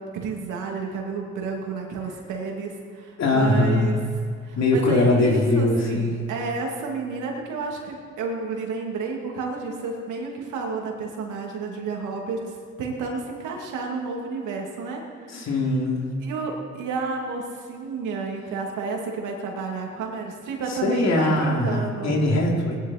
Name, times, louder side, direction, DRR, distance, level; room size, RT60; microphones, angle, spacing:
voice 1, 0.0-4.0 4.4-15.6 16.2-22.2, right 4 dB, 85° right, 0 dB, 2.5 m, -31 dB
voice 2, 3.2-4.0 4.6-6.2 15.3-16.1 20.7-22.8, left 2 dB, 60° left, -1 dB, 3.0 m, -21 dB
19.0 x 10.5 x 4.3 m, 2.1 s
cardioid pair, 90°, 30 cm